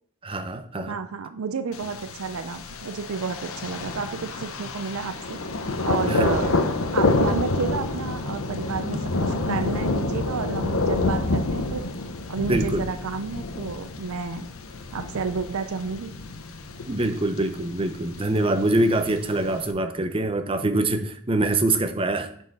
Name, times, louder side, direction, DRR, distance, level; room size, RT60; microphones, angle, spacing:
voice 1, 0.2-1.0 6.1-6.4 12.5-12.9 16.9-22.3, right 2 dB, 25° right, 8 dB, 0.7 m, -24 dB
voice 2, 0.9-5.4 5.8-6.6 6.9-11.8 12.3-14.5 14.9-16.1, right 5 dB, 75° right, 9 dB, 0.5 m, -31 dB
Thunder, 1.7-19.7, left 2 dB, 70° left, 0.8 m, -28 dB
7.8 x 4.6 x 5.4 m, 0.62 s
head